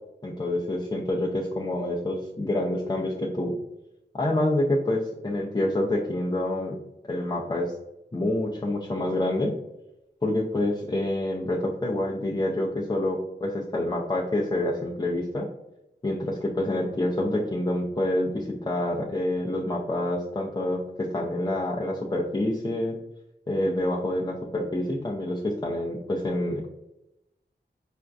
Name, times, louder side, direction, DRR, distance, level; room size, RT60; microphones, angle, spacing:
voice 1, 0.2-3.6 4.1-6.7 7.1-7.8 8.1-9.5 10.2-15.5 16.0-23.0 23.5-26.7, left 1 dB, 20° left, -4 dB, 0.5 m, -27 dB
4.3 x 2.5 x 2.3 m, 0.90 s
wide cardioid pair, 60°, 19 cm